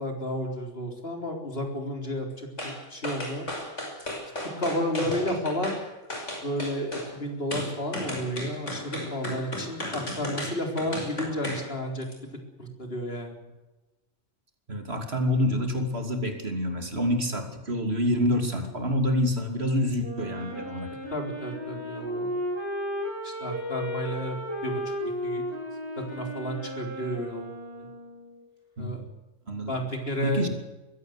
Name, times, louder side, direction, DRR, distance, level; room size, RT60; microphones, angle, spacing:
voice 1, 0.0-3.5 4.4-5.7 6.4-12.1 12.6-13.4 21.1-22.4 23.2-24.8 25.2-25.4 26.1-27.5 28.8-29.0 29.7-30.4, equal, 50° left, 3 dB, 4.2 m, -32 dB
sound 1, 2.6-2.8 3.0-5.8 6.1-7.1 7.5-11.7 12.0-12.1, left 1 dB, 75° left, 6.1 m, -34 dB
voice 2, 14.7-20.9 28.8-29.0 29.5-29.8 30.2-30.5, equal, 55° right, 5 dB, 3.2 m, -27 dB
Wind instrument woodwind instrument, 20.0-28.3, equal, 20° left, 7.8 m, -34 dB
22.5 x 16.0 x 8.1 m, 1.1 s
omnidirectional pair, 1.3 m